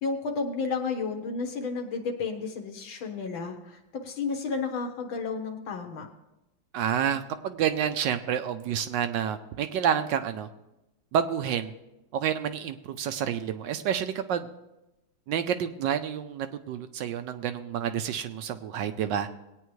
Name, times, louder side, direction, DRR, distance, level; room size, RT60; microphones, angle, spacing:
voice 1, 0.0-6.1, left 4 dB, 85° left, 3 dB, 2.0 m, -32 dB
voice 2, 6.7-10.5 11.1-11.7 12.1-14.4 15.3-19.3, right 9 dB, 75° right, 9 dB, 1.2 m, -29 dB
19.5 x 9.1 x 3.2 m, 0.95 s
omnidirectional pair, 2.1 m